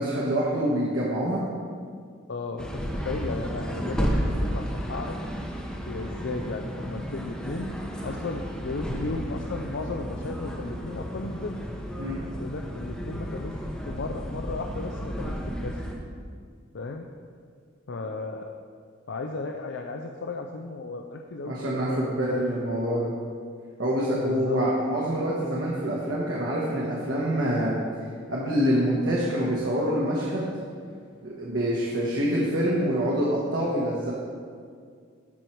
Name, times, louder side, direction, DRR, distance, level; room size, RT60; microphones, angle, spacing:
voice 1, 0.0-1.4 12.0-12.2 21.4-23.1 23.8-27.8 28.3-30.5 31.2-34.1, equal, 70° right, -6 dB, 1.4 m, -26 dB
voice 2, 2.3-5.2 5.9-7.7 8.0-11.6 12.4-15.8 16.7-17.1 17.9-18.4 19.1-22.4 24.2-24.6, left 3 dB, 70° left, 3 dB, 0.5 m, -35 dB
sound 1, 2.6-16.0, equal, 5° left, 0.8 m, -32 dB
13.5 x 4.7 x 4.5 m, 2.1 s
head